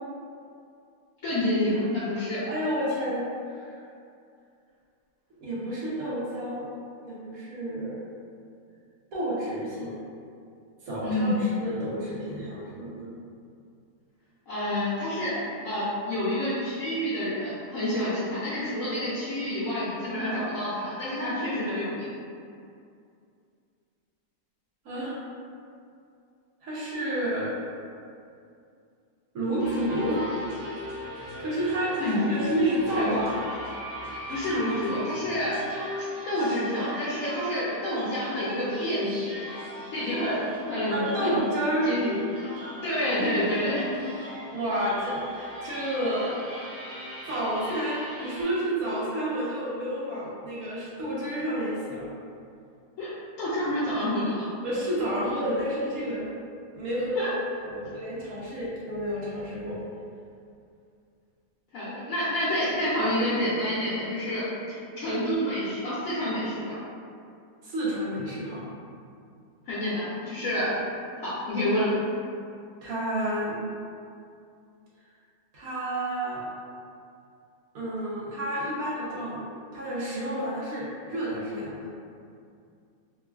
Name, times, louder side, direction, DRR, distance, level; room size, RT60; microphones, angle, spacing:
voice 1, 1.2-2.4 11.0-11.4 14.5-22.1 32.0-32.2 32.9-33.1 34.0-35.8 36.3-39.5 39.9-40.4 40.7-41.4 41.8-42.1 42.8-43.9 47.7-47.8 53.0-53.1 53.4-54.4 57.1-57.3 61.7-66.8 69.7-70.7 71.2-71.9, left 1 dB, 65° left, -11 dB, 0.9 m, -28 dB
voice 2, 2.5-3.7 5.4-6.7 7.1-7.9 9.1-10.0 10.8-13.1 24.8-25.1 26.6-27.5 29.3-30.2 31.4-31.9 32.3-33.3 40.9-41.9 44.5-45.2 45.6-46.4 47.3-52.1 54.6-56.3 56.7-59.8 67.6-68.6 72.8-73.6 75.5-76.4 77.7-79.4 79.7-81.9, right 1 dB, 70° right, -7 dB, 1.2 m, -30 dB
sound 1, 29.6-48.4, equal, 50° right, 0.8 m, -38 dB
3.0 x 2.3 x 2.3 m, 2.4 s
omnidirectional pair, 1.6 m